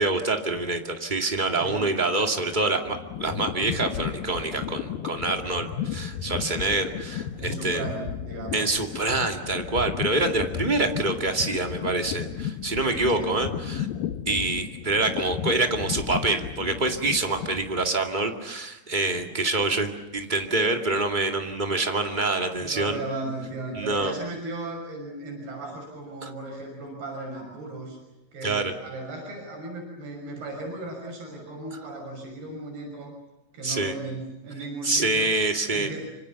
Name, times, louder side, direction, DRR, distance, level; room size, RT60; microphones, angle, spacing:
voice 1, 0.0-7.8 8.5-13.9 14.2-23.0 23.7-24.1 26.2-26.3 28.4-28.7 33.6-33.9 34.8-35.9, right 2 dB, 20° right, 4 dB, 1.5 m, -26 dB
voice 2, 1.6-2.0 7.4-8.9 13.1-13.3 22.6-28.0 28.3-33.2 33.5-35.4 35.7-36.1, right 2 dB, 80° right, 1 dB, 8.2 m, -36 dB
sound 1, 2.5-18.0, left 9 dB, 70° left, 2.6 m, -34 dB
26.5 x 26.0 x 7.1 m, 0.94 s
omnidirectional pair, 4.5 m